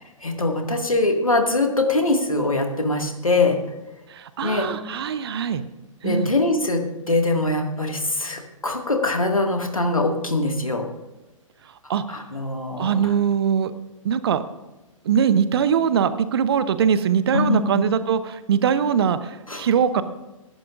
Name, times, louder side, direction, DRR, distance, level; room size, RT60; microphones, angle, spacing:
voice 1, 0.2-3.6 4.4-4.7 6.0-10.9 12.1-13.1 17.3-17.8 19.5-19.7, left 2 dB, 80° left, 3 dB, 1.9 m, -23 dB
voice 2, 4.1-5.6 6.0-6.3 11.9-12.0 12.8-13.7 14.0-14.4 15.0-20.0, right 7 dB, 45° right, 13 dB, 0.8 m, -21 dB
22.0 x 11.5 x 2.5 m, 1.1 s
figure-of-eight pair, 115°, 17 cm